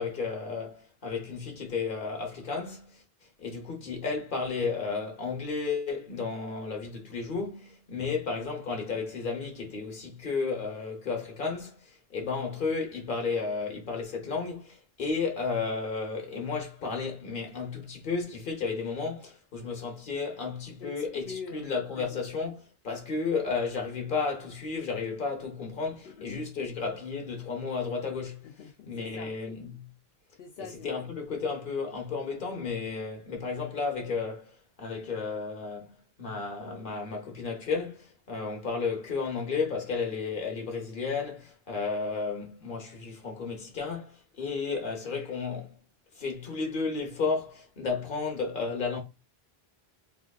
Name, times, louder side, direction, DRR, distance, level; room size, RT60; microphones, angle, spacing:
voice 1, 0.0-3.0 3.4-28.5 28.9-29.9 30.6-45.8 46.1-49.0, left 4 dB, 55° left, 1.2 m, -33 dB
voice 2, 20.8-21.7 22.0-22.1 26.1-26.5 28.4-29.3 30.4-31.0, left 6 dB, 80° left, 0.8 m, -43 dB
3.5 x 3.4 x 2.3 m
omnidirectional pair, 1.0 m